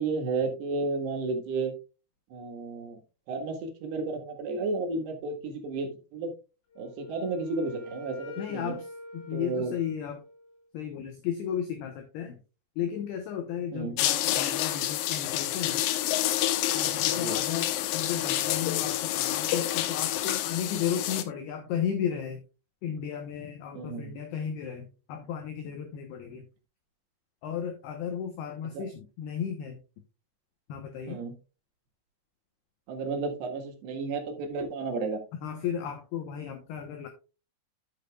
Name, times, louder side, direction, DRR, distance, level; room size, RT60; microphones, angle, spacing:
voice 1, 0.0-1.7 2.3-3.0 3.3-6.3 6.8-8.8 9.3-9.8 13.7-14.0 17.1-17.4 23.7-24.1 28.7-28.9 31.1-31.3 32.9-35.2, right 3 dB, 65° right, 1 dB, 3.3 m, -32 dB
Wind instrument woodwind instrument, 6.7-10.6, left 2 dB, 50° left, 7.6 m, -44 dB
voice 2, 8.4-8.9 9.1-10.2 10.7-12.4 12.8-15.9 16.7-22.4 22.8-26.5 27.4-29.8 30.7-31.2 35.3-37.1, left 8 dB, 75° left, 6 dB, 2.5 m, -34 dB
sound 1, 14.0-21.2, left 13 dB, 90° left, 3.5 m, -28 dB
12.0 x 7.5 x 2.3 m, 0.31 s
omnidirectional pair, 5.8 m